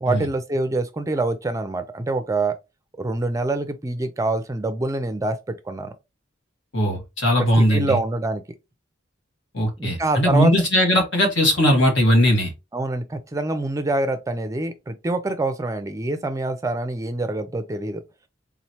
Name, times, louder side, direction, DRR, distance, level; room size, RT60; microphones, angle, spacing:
voice 1, 0.0-2.6 3.0-5.9 7.4-8.4 9.8-10.5 12.7-18.0, right 2 dB, 15° right, 0.4 m, -25 dB
voice 2, 6.7-7.9 9.5-12.5, equal, 75° left, 1.7 m, -19 dB
3.8 x 3.1 x 2.8 m
head